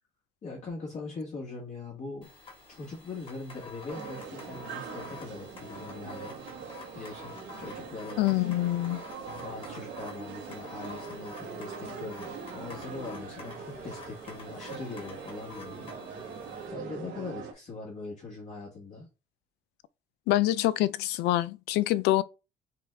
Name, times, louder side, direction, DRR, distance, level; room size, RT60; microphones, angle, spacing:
voice 1, 0.4-2.3 2.7-6.3 6.9-7.3 7.6-8.2 9.4-16.4 16.7-19.1, left 3 dB, 45° left, 1.6 m, -41 dB
sound 1, 2.2-16.7, left 4 dB, 30° left, 2.0 m, -49 dB
sound 2, 3.9-17.5, right 5 dB, 85° right, 1.2 m, -42 dB
voice 2, 8.2-9.0 20.3-22.2, left 15 dB, 85° left, 0.4 m, -25 dB
5.6 x 2.4 x 3.4 m
cardioid pair, 110°, 17 cm